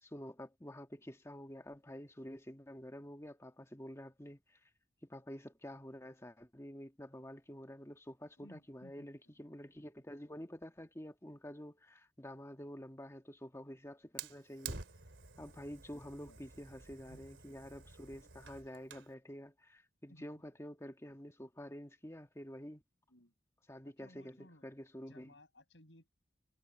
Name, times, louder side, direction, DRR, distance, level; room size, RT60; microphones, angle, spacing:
voice 1, 0.0-4.6 5.1-14.8 15.4-22.8 23.7-25.3, equal, 15° left, 1.4 m, -49 dB
voice 2, 8.4-9.1 16.3-16.4 17.1-17.3 20.1-20.3 23.1-23.3 23.8-24.6 25.0-26.1, left 1 dB, 75° left, 6.7 m, -60 dB
Fire, 14.2-19.1, right 5 dB, 90° right, 2.9 m, -50 dB
head